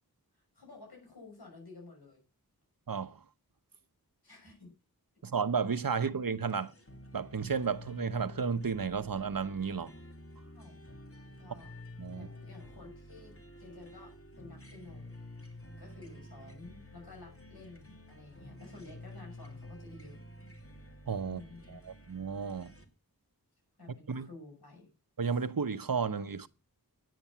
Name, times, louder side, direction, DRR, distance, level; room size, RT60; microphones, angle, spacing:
voice 1, 0.3-2.2 4.2-4.7 10.5-10.8 11.4-11.8 12.1-15.1 15.5-20.2 21.2-21.8 23.8-24.9, left 2 dB, 85° left, 6.5 m, -52 dB
voice 2, 2.9-3.2 5.2-6.7 7.1-9.9 12.0-12.3 21.1-21.4 21.7-22.7 24.1-24.3 25.2-26.5, right 5 dB, 65° right, 1.0 m, -33 dB
sound 1, 6.5-22.8, left 1 dB, 35° left, 3.1 m, -50 dB
10.0 x 9.1 x 5.8 m
wide cardioid pair, 50°, 37 cm